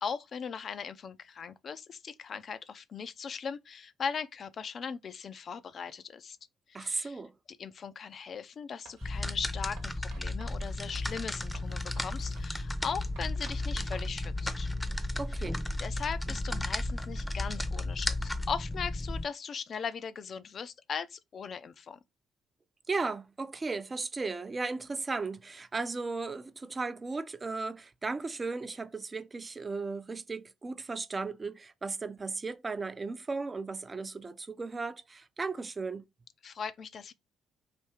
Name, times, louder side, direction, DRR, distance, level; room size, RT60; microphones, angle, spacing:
voice 1, 0.0-6.4 6.8-7.2 7.6-14.7 15.8-22.0 36.4-37.1, left 6 dB, 55° left, 0.4 m, -39 dB
voice 2, 6.7-7.3 15.2-15.6 22.9-36.0, right 3 dB, 35° right, 0.5 m, -36 dB
Writing, 8.9-9.2 9.8-14.2, right 4 dB, 85° right, 1.0 m, -54 dB
sound 1, 9.0-19.2, left 1 dB, 10° left, 0.7 m, -34 dB
3.4 x 2.7 x 4.4 m
hypercardioid pair, 55°, 0 cm